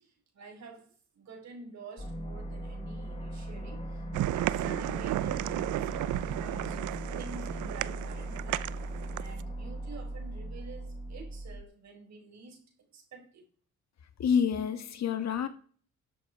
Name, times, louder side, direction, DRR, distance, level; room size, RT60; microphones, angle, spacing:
voice 1, 0.0-4.0 4.3-8.8 9.2-12.6 12.9-13.4, right 4 dB, 65° right, 4.6 m, -48 dB
sound 1, 2.0-11.6, right 1 dB, 20° left, 1.7 m, -39 dB
sound 2, 4.1-9.4, right 15 dB, 80° right, 0.6 m, -33 dB
voice 2, 14.2-15.5, left 7 dB, 60° left, 1.6 m, -28 dB
13.0 x 7.7 x 4.8 m
cardioid pair, 90°, 30 cm